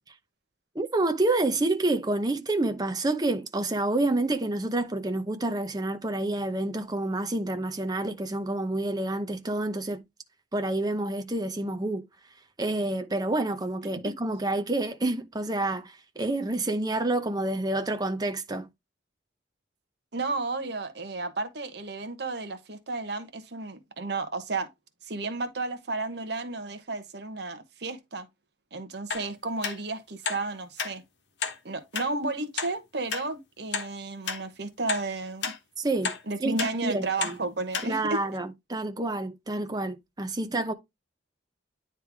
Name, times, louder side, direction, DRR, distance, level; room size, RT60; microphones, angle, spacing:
voice 1, 0.7-10.0 10.5-12.0 12.6-18.7 35.8-36.1 36.4-37.4 37.8-40.7, right 2 dB, 20° right, 0.7 m, -28 dB
voice 2, 20.1-24.7 25.0-28.3 28.7-31.0 31.6-35.5 36.3-38.3, right 3 dB, 60° right, 1.0 m, -33 dB
sound 1, 29.1-29.3 29.6-29.8 30.2-30.4 30.8-30.9 31.4-31.6 31.9-32.1 32.6-32.7 33.1-33.2 33.7-33.9 34.3-34.4 34.9-35.0 35.4-35.6 36.0-36.2 36.6-36.7 37.2-37.4 37.7-37.9 38.4-38.5, left 5 dB, 65° left, 1.2 m, -31 dB
9.7 x 3.3 x 3.4 m
head